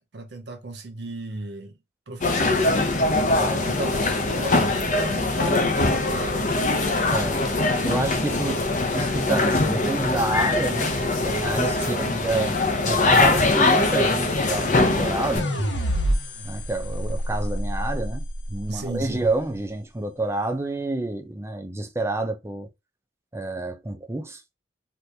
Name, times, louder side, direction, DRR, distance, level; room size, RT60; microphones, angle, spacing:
voice 1, 0.1-1.7 2.1-2.6 3.6-6.6 11.8-12.2 18.7-19.3, right 2 dB, 65° right, 0.7 m, -35 dB
sound 1, 2.2-15.4, left 2 dB, 40° left, 0.6 m, -22 dB
voice 2, 7.1-7.4 7.8-8.6 8.9-11.0 11.2-12.6 12.9-15.5 16.4-22.7 23.3-24.4, right 2 dB, 15° right, 0.5 m, -28 dB
sound 2, 15.4-18.6, equal, 80° left, 0.9 m, -27 dB
2.9 x 2.5 x 3.3 m
head